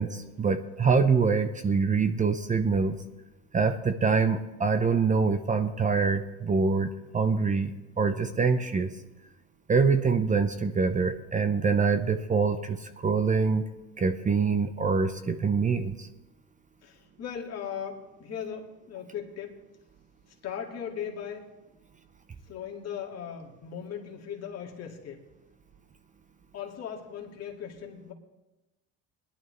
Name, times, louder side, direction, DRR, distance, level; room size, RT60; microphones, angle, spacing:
voice 1, 0.0-3.0 3.5-7.7 8.0-8.9 9.7-13.7 14.0-16.1, right 5 dB, 25° right, 9 dB, 0.8 m, -25 dB
voice 2, 16.8-19.6 20.4-21.5 22.5-25.2 26.5-28.1, left 8 dB, 50° left, 0 dB, 2.1 m, -38 dB
19.0 x 11.5 x 3.2 m, 1.0 s
supercardioid pair, 105°, 33 cm